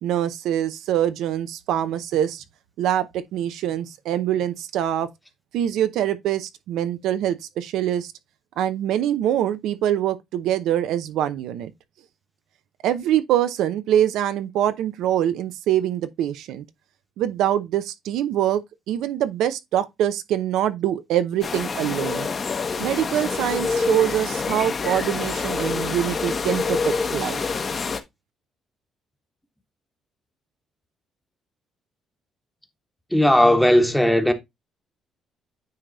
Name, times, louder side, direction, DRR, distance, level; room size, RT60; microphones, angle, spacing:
voice 1, 0.0-2.4 2.8-5.1 5.5-8.1 8.6-11.7 12.8-16.6 17.2-18.6 18.9-22.3 22.8-27.4, right 11 dB, 90° right, 0.7 m, -24 dB
sound 1, 21.4-28.0, left 4 dB, 30° left, 1.0 m, -26 dB
voice 2, 33.1-34.3, left 1 dB, ahead, 1.1 m, -16 dB
9.5 x 3.4 x 4.0 m
cardioid pair, 150°, 0 cm